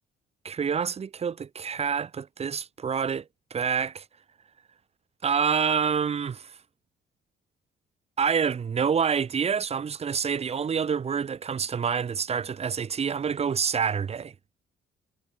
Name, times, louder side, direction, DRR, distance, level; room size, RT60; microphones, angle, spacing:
voice 1, 0.4-4.0 5.2-6.6 8.2-14.3, right 6 dB, 30° right, 0.5 m, -27 dB
cardioid pair, 90°, 20 cm